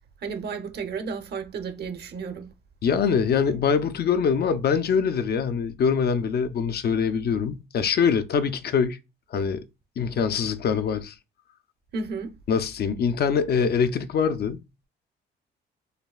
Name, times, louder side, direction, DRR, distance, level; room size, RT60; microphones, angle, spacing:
voice 1, 0.2-2.5 11.9-12.3, right 5 dB, 55° right, 0.9 m, -33 dB
voice 2, 2.8-9.0 9.3-9.6 10.0-11.2 12.5-14.6, left 6 dB, 55° left, 0.5 m, -24 dB
6.5 x 2.2 x 2.3 m
cardioid pair, 90°, 20 cm